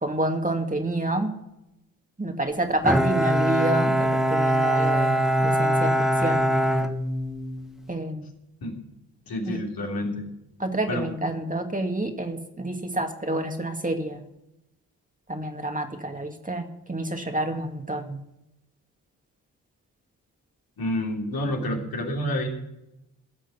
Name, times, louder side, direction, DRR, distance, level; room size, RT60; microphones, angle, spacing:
voice 1, 0.0-1.3 2.2-5.9 6.2-6.5 7.9-8.3 9.4-9.6 10.6-14.2 15.3-18.2, right 1 dB, 20° right, 4 dB, 2.2 m, -28 dB
Bowed string instrument, 2.8-7.7, right 1 dB, ahead, 1.2 m, -22 dB
voice 2, 9.3-10.2 10.9-11.1 20.8-22.5, left 1 dB, 65° left, 0 dB, 3.2 m, -28 dB
15.5 x 6.2 x 8.5 m, 0.88 s
hypercardioid pair, 40°, 38 cm